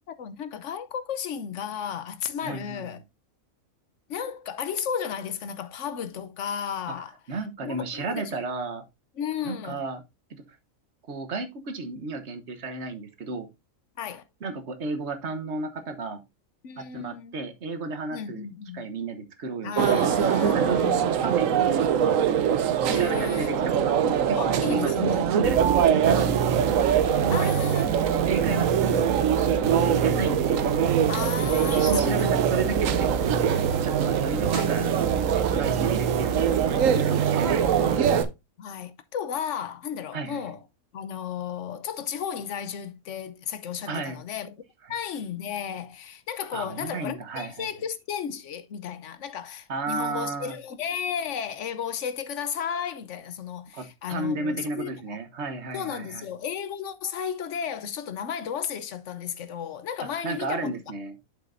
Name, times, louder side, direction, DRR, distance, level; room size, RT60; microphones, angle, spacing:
voice 1, 0.1-3.0 4.1-7.1 7.6-8.4 9.2-9.8 14.0-14.2 16.6-17.4 18.1-18.9 19.6-21.2 22.9-23.8 24.4-25.2 27.3-28.2 31.1-32.8 34.5-34.7 37.8-37.9 38.6-40.6 40.9-44.6 44.9-54.9 55.7-60.7, left 8 dB, 60° left, 1.1 m, -34 dB
voice 2, 2.4-2.9 7.3-8.8 9.4-10.0 11.1-13.5 14.4-16.2 16.8-18.5 18.7-20.8 21.2-22.2 22.9-23.5 23.8-26.7 27.2-27.6 28.3-29.5 29.8-30.7 31.4-34.9 35.3-36.5 36.9-38.1 40.1-40.5 43.9-44.2 46.5-47.7 49.7-50.5 53.7-56.2 60.2-61.1, right 3 dB, 55° right, 1.4 m, -33 dB
sound 1, 19.8-38.3, right 8 dB, 70° right, 1.1 m, -23 dB
sound 2, 25.4-38.2, right 7 dB, 90° right, 1.4 m, -29 dB
8.3 x 6.8 x 2.6 m
omnidirectional pair, 1.5 m